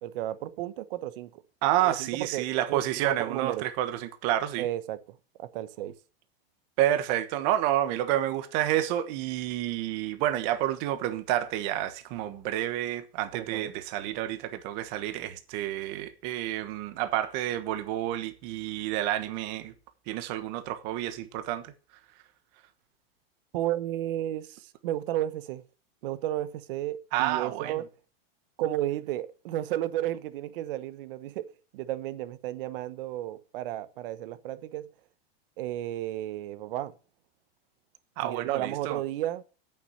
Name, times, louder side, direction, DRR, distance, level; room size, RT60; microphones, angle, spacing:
voice 1, 0.0-1.4 1.8-3.7 4.6-5.9 13.3-13.7 23.5-25.6 26.0-27.9 28.6-34.9 35.6-36.9 38.2-39.4, right 13 dB, 65° right, 1.1 m, -33 dB
voice 2, 1.6-4.7 6.8-19.7 20.1-21.7 27.1-27.7 38.2-39.0, right 13 dB, 45° right, 1.3 m, -29 dB
8.5 x 7.0 x 6.5 m
supercardioid pair, 150°, 30 cm